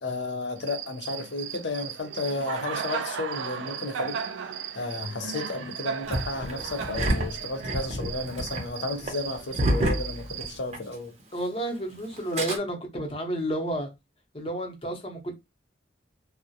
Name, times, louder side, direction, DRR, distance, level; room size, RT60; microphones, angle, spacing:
voice 1, 0.0-4.2 4.7-11.1, left 3 dB, 75° left, 0.6 m, -33 dB
Cricket, 0.6-10.6, right 7 dB, 85° right, 0.3 m, -36 dB
Engine starting, 6.1-10.9 11.2-11.3 12.1-12.6, right 1 dB, 35° right, 0.6 m, -29 dB
voice 2, 11.3-13.9 14.3-15.4, right 1 dB, 30° left, 0.7 m, -31 dB
2.3 x 2.0 x 2.7 m
head